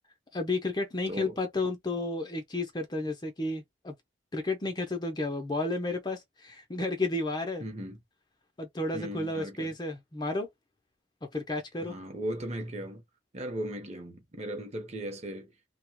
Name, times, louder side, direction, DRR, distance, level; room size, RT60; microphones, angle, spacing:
voice 1, 0.3-3.9 4.3-7.6 8.6-10.5 11.3-12.0, left 2 dB, 20° left, 0.6 m, -32 dB
voice 2, 1.1-1.4 7.6-8.0 8.9-9.7 11.8-13.0 13.3-15.5, right 1 dB, 35° right, 0.8 m, -37 dB
2.8 x 2.2 x 2.9 m
head